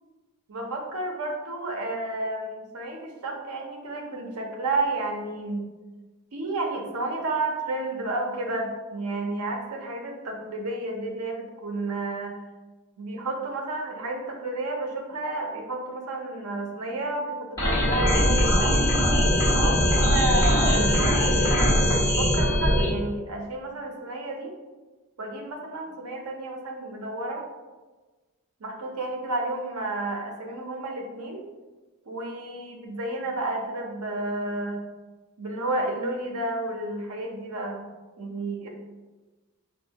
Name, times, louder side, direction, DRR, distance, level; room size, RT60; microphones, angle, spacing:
voice 1, 0.5-5.6 6.3-12.3 13.0-19.2 19.6-24.5 25.2-27.4 28.6-31.4 32.1-34.8 35.4-37.8 38.2-38.7, right 2 dB, 85° right, 2 dB, 0.7 m, -31 dB
sound 1, 17.6-22.9, equal, 15° left, 1.4 m, -21 dB
4.5 x 2.5 x 2.8 m, 1.2 s
head